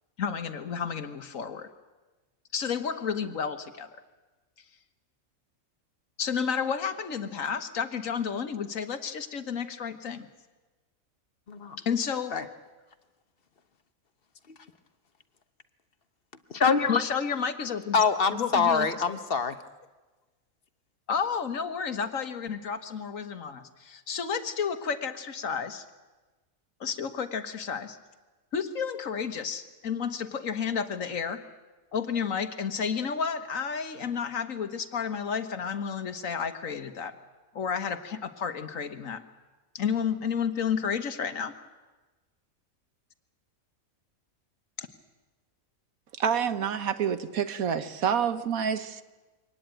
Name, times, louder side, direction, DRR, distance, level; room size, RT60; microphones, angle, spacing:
voice 1, 0.2-1.7 2.5-3.9 6.2-10.3 11.8-12.4 16.9-18.0 18.3-19.2 21.1-25.8 26.8-28.0 28.5-31.4 31.9-37.1 37.6-39.2 39.8-41.5 44.8-44.9, left 6 dB, 70° left, 10 dB, 1.7 m, -31 dB
voice 2, 16.5-17.0 17.9-19.5, left 5 dB, 45° left, 10 dB, 1.2 m, -24 dB
voice 3, 46.2-49.0, right 7 dB, 85° right, 12 dB, 1.5 m, -28 dB
24.0 x 18.5 x 9.1 m, 1.2 s
omnidirectional pair, 1.4 m